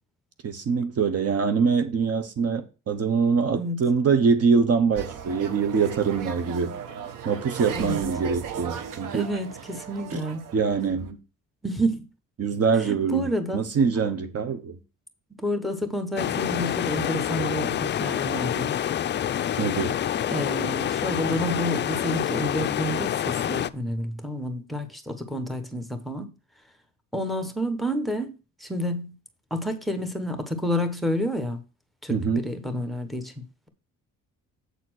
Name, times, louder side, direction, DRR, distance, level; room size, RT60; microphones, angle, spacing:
voice 1, 0.4-6.7 7.2-9.3 10.1-10.2 10.5-11.2 12.4-13.3 13.5-14.8 19.6-20.0 32.1-32.4, right 5 dB, 50° right, 1.0 m, -24 dB
voice 2, 3.5-3.8 7.8-8.0 9.1-10.4 11.6-12.0 12.9-13.6 15.4-18.8 20.3-26.3 27.1-29.1 29.5-31.6 32.0-33.7, equal, ahead, 1.2 m, -29 dB
sound 1, 5.0-11.1, right 8 dB, 75° right, 1.0 m, -36 dB
sound 2, 16.2-23.7, left 10 dB, 35° left, 0.4 m, -27 dB
8.0 x 4.2 x 6.2 m
cardioid pair, 105°, 32 cm